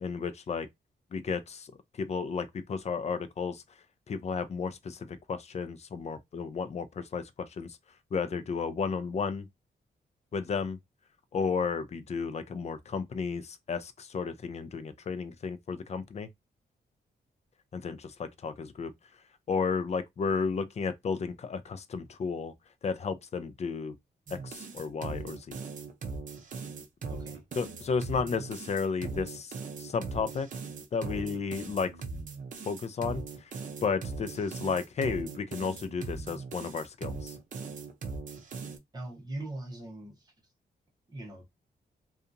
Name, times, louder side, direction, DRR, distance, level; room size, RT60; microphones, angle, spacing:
voice 1, 0.0-0.7 1.1-1.7 2.0-3.6 4.1-7.8 8.1-9.5 10.3-10.8 11.3-16.3 17.7-18.9 19.5-22.5 22.8-24.0 24.3-25.6 27.6-30.5 30.9-31.9 32.7-33.2 33.8-37.3, left 5 dB, 40° left, 0.4 m, -33 dB
sound 1, 24.3-38.8, right 4 dB, 50° right, 0.5 m, -40 dB
voice 2, 27.1-27.4 38.9-40.3 41.1-41.4, right 2 dB, 20° right, 0.8 m, -41 dB
2.8 x 2.3 x 2.5 m
wide cardioid pair, 145°, 18 cm